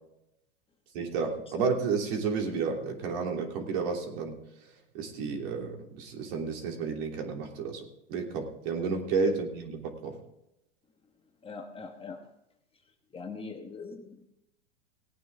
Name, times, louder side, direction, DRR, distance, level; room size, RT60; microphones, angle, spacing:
voice 1, 0.9-4.4 4.9-10.2, right 5 dB, 50° right, 2 dB, 3.2 m, -31 dB
voice 2, 11.4-12.2 13.1-14.2, left 4 dB, 15° left, 3 dB, 1.2 m, -41 dB
18.5 x 9.2 x 3.6 m, 0.83 s
hypercardioid pair, 130°, 36 cm